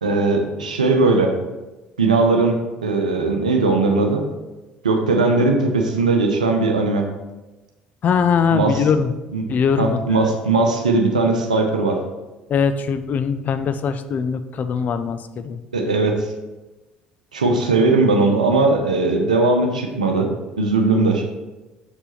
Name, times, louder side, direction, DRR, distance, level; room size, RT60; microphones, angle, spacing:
voice 1, 0.0-1.3 2.0-2.6 2.8-4.2 4.8-7.0 8.5-8.8 9.3-9.4 9.8-12.0 15.7-16.3 17.3-20.3 20.6-21.2, right 3 dB, 85° right, 2 dB, 0.8 m, -18 dB
voice 2, 8.0-9.1 9.5-10.4 12.5-15.6, left 6 dB, 45° left, 11 dB, 0.5 m, -21 dB
6.8 x 4.5 x 4.4 m, 1.1 s
figure-of-eight pair, 55°, 4 cm